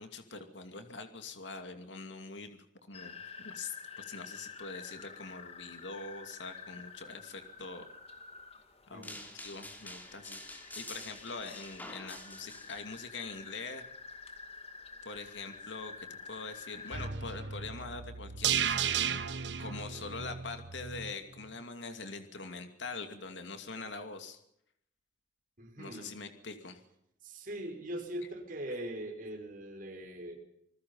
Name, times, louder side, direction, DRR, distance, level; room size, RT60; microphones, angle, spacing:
voice 1, 0.0-7.9 8.9-13.8 15.0-19.2 19.6-24.4 25.8-26.8, left 3 dB, 75° left, 7 dB, 2.5 m, -44 dB
sound 1, 2.9-17.1, left 5 dB, 35° left, 2.4 m, -49 dB
voice 2, 8.9-9.2 25.6-26.1 27.2-30.4, right 1 dB, 45° right, 2 dB, 5.6 m, -41 dB
sound 2, 9.0-13.0, left 1 dB, 10° left, 3.6 m, -47 dB
sound 3, 16.9-21.1 21.4-21.5, right 8 dB, 65° right, 1.4 m, -34 dB
27.0 x 20.0 x 5.6 m, 0.76 s
head